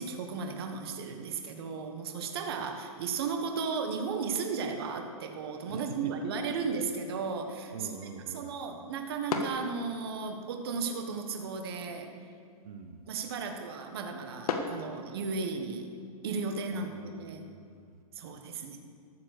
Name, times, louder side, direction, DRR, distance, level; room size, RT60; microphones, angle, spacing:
voice 1, 0.0-7.9 8.3-12.1 13.1-15.9 16.2-17.4 18.1-18.8, right 5 dB, 40° right, 4 dB, 1.3 m, -35 dB
sound 1, 5.5-15.6, left 4 dB, 75° left, 1.6 m, -42 dB
voice 2, 5.7-6.3 7.7-8.5 12.6-13.0 16.7-18.0, right 5 dB, 75° right, 7 dB, 1.0 m, -44 dB
13.5 x 7.3 x 6.6 m, 2.3 s
hypercardioid pair, 175°, 19 cm